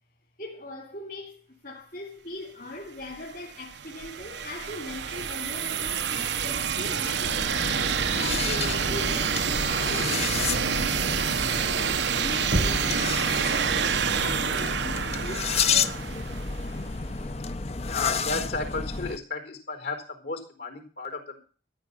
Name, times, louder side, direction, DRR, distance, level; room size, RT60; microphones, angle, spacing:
voice 1, 0.4-7.9 8.2-16.5, left 1 dB, 55° left, 3.0 m, -40 dB
sound 1, 3.1-16.8, right 7 dB, 85° right, 0.9 m, -28 dB
sound 2, 7.2-19.2, left 5 dB, 35° left, 0.6 m, -31 dB
Knock, 12.5-13.2, right 1 dB, 55° right, 1.0 m, -27 dB
voice 2, 17.8-21.4, left 3 dB, 75° left, 4.5 m, -33 dB
14.0 x 6.0 x 10.0 m
head